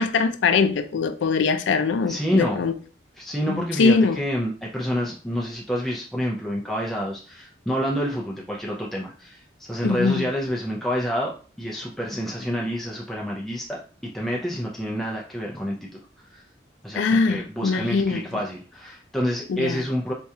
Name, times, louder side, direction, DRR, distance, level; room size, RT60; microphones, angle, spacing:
voice 1, 0.0-2.7 3.5-4.2 9.8-10.3 17.0-18.2 19.5-19.8, left 4 dB, 90° left, 0.4 m, -22 dB
voice 2, 2.1-2.6 3.2-16.4 16.8-20.1, equal, ahead, 0.4 m, -28 dB
4.3 x 2.3 x 2.7 m
head